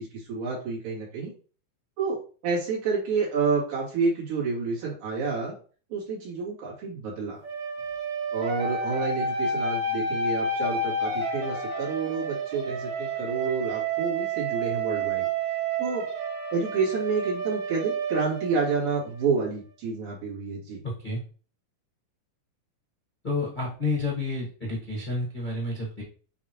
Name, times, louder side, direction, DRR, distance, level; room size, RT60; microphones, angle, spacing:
voice 1, 0.0-1.3 2.0-2.2 2.4-5.5 5.9-7.4 8.3-15.3 15.8-16.1 16.5-20.8, right 4 dB, 80° right, -6 dB, 4.4 m, -29 dB
sound 1, 7.4-19.2, right 3 dB, 60° right, 1.6 m, -30 dB
voice 2, 20.8-21.2 23.2-26.0, left 2 dB, 80° left, -5 dB, 0.4 m, -30 dB
8.7 x 3.6 x 3.1 m, 0.40 s
omnidirectional pair, 3.9 m